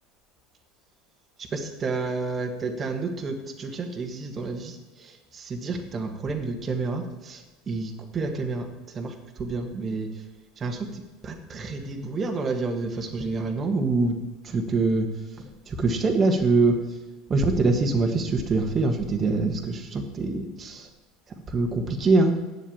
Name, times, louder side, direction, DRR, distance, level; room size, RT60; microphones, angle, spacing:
voice 1, 1.5-4.7 5.3-7.4 7.7-8.6 8.9-9.1 9.4-10.1 10.6-10.8 11.2-14.1 14.4-15.1 15.7-16.7 17.3-20.9 21.5-22.4, right 3 dB, 30° right, 3 dB, 1.6 m, -26 dB
8.0 x 7.5 x 8.6 m, 1.2 s
hypercardioid pair, 85°, 0 cm